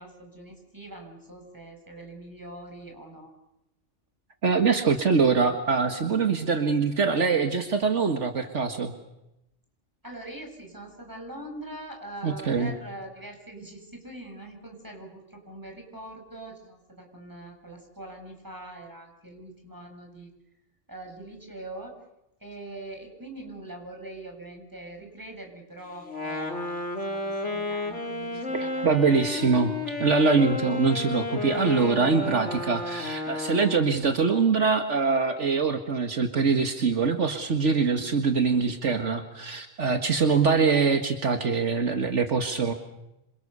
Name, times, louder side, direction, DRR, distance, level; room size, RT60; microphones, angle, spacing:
voice 1, 0.0-3.3 10.0-20.3 20.9-22.0 22.4-29.5, right 1 dB, 15° right, 3 dB, 7.4 m, -43 dB
voice 2, 4.4-8.9 12.2-12.7 28.5-29.7 30.0-42.7, right 5 dB, 70° right, 6 dB, 2.0 m, -23 dB
Wind instrument woodwind instrument, 26.0-34.0, left 2 dB, 70° left, 4.0 m, -32 dB
27.5 x 27.0 x 6.8 m, 0.88 s
omnidirectional pair, 1.3 m